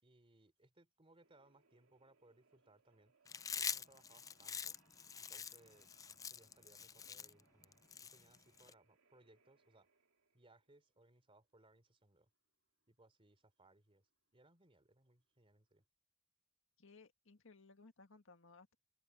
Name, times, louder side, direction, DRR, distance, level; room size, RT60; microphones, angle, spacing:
voice 1, 0.0-3.1 3.6-4.8 5.3-6.0 6.3-7.8 8.1-9.9 10.3-12.3 12.9-14.0 14.3-15.8, right 2 dB, 25° right, 3.2 m, -68 dB
sound 1, 1.2-15.8, right 4 dB, 65° right, 2.9 m, -76 dB
Chewing mastication, 3.3-8.7, left 7 dB, 15° left, 0.3 m, -45 dB
voice 2, 16.8-18.7, left 3 dB, 60° left, 1.8 m, -61 dB
head